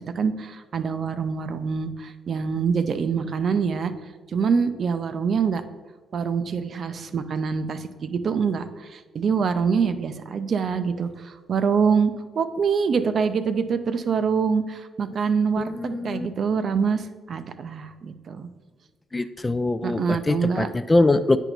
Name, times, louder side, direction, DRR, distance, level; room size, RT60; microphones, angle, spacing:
voice 1, 0.0-3.9 4.3-5.6 6.1-18.5 19.8-20.7, right 6 dB, 55° right, 10 dB, 0.5 m, -25 dB
voice 2, 15.6-16.3 19.1-21.4, left 2 dB, 20° left, 12 dB, 0.3 m, -23 dB
8.8 x 4.5 x 4.0 m, 1.4 s
cardioid pair, 90°, 0 cm